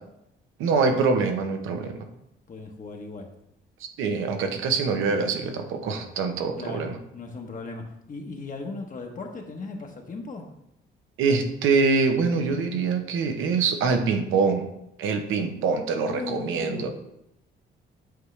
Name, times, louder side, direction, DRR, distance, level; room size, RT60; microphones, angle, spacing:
voice 1, 0.6-2.0 3.8-6.9 11.2-14.7 15.0-16.9, right 4 dB, 85° right, 6 dB, 0.9 m, -24 dB
voice 2, 2.5-3.3 6.6-10.5 16.1-16.9, left 3 dB, 40° left, 2 dB, 1.0 m, -37 dB
8.0 x 4.8 x 3.2 m, 0.83 s
cardioid pair, 90°, 20 cm